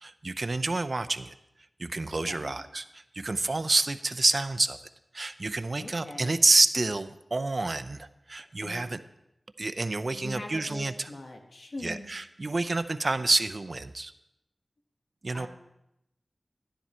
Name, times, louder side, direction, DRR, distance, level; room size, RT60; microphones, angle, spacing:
voice 1, 0.0-1.3 1.8-2.8 3.1-4.8 5.1-9.0 9.6-11.1 11.8-14.1 15.2-15.5, right 2 dB, 55° right, 12 dB, 0.6 m, -28 dB
voice 2, 2.2-2.6 5.8-6.3 8.6-8.9 10.1-12.1 15.3-15.5, left 2 dB, 70° left, 2 dB, 1.5 m, -42 dB
12.5 x 10.0 x 4.4 m, 0.84 s
wide cardioid pair, 70°, 0 cm